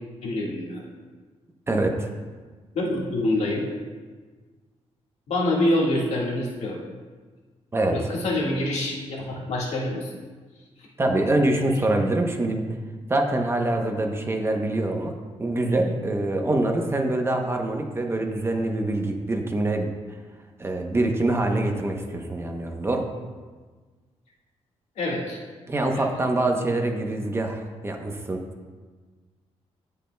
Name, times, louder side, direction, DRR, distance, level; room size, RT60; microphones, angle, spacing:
voice 1, 0.2-0.8 2.8-3.7 5.3-6.8 7.9-10.1 10.8-10.9 25.0-25.4 25.9-26.1, left 1 dB, 75° left, -3 dB, 1.8 m, -26 dB
voice 2, 1.7-2.1 7.7-8.0 11.0-12.7 13.1-15.1 15.4-19.9 20.6-23.1 25.7-28.4, right 2 dB, 20° right, 3 dB, 0.8 m, -24 dB
16.5 x 5.4 x 2.3 m, 1.4 s
cardioid pair, 120°, 11 cm